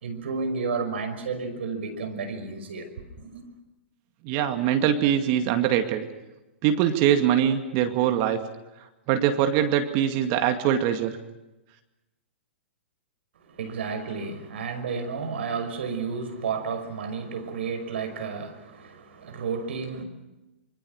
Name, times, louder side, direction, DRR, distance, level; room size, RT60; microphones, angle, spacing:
voice 1, 0.0-2.9 3.2-3.4 13.4-20.0, right 5 dB, 65° right, 8 dB, 5.6 m, -32 dB
voice 2, 4.2-6.1 6.6-8.4 9.1-11.1, right 10 dB, 40° right, 6 dB, 2.2 m, -23 dB
26.0 x 24.5 x 6.5 m, 1.0 s
hypercardioid pair, 110°, 7 cm